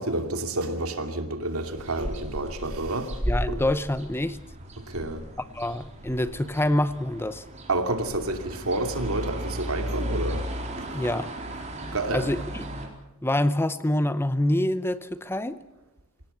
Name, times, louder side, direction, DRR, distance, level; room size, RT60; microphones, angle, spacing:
voice 1, 0.0-3.2 3.5-3.6 4.8-5.2 7.7-10.4 11.9-12.3, right 2 dB, 70° right, 6 dB, 2.7 m, -29 dB
sound 1, 1.6-12.9, equal, 30° right, 4.3 m, -35 dB
voice 2, 3.3-4.4 5.5-7.4 10.9-11.3 12.1-12.4 13.2-15.6, left 1 dB, 10° left, 13 dB, 0.7 m, -26 dB
25.0 x 18.0 x 8.0 m, 0.95 s
head